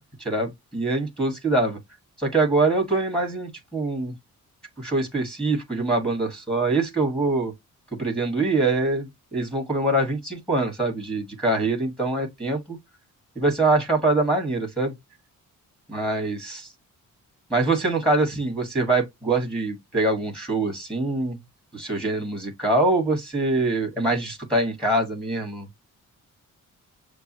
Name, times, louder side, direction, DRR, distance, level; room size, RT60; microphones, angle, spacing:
voice 1, 0.2-1.8 2.2-4.1 4.8-7.5 8.0-12.8 13.3-14.9 15.9-16.7 17.5-21.4 21.7-25.7, right 2 dB, ahead, 1.5 m, -24 dB
6.7 x 2.3 x 2.8 m
cardioid pair, 140°, 31 cm